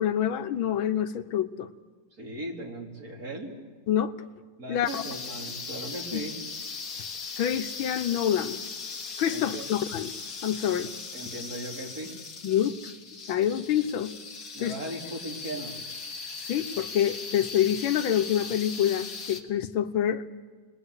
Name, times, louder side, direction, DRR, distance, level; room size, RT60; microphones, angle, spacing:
voice 1, 0.0-1.7 3.9-4.1 4.7-5.0 6.1-6.2 7.4-8.6 9.2-10.1 10.4-10.9 12.4-12.8 13.3-14.1 14.6-14.8 16.5-20.3, left 10 dB, 90° left, 9 dB, 1.8 m, -26 dB
voice 2, 2.2-3.6 4.6-6.4 9.3-9.7 10.7-10.8 11.1-12.1 14.5-15.8, right 1 dB, 50° right, 0 dB, 4.0 m, -38 dB
sound 1, 4.9-19.4, left 4 dB, 45° left, 2.0 m, -39 dB
28.5 x 20.5 x 8.1 m, 1.4 s
omnidirectional pair, 2.1 m